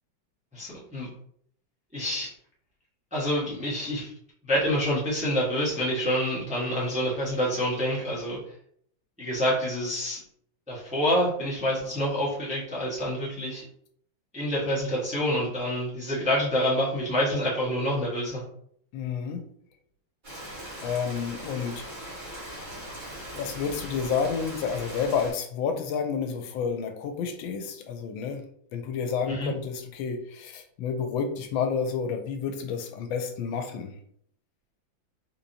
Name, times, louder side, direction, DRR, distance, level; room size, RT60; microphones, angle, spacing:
voice 1, 0.5-1.1 1.9-2.3 3.1-4.1 4.5-8.4 9.2-10.2 10.7-13.6 14.3-18.4 29.3-29.5, equal, 5° right, -6 dB, 0.7 m, -27 dB
voice 2, 18.9-19.5 20.8-21.9 23.3-28.4 28.7-33.9, left 6 dB, 85° left, 6 dB, 1.4 m, -30 dB
Rain, 20.2-25.3, equal, 25° right, 1.3 m, -40 dB
3.7 x 3.0 x 2.6 m, 0.65 s
omnidirectional pair, 2.1 m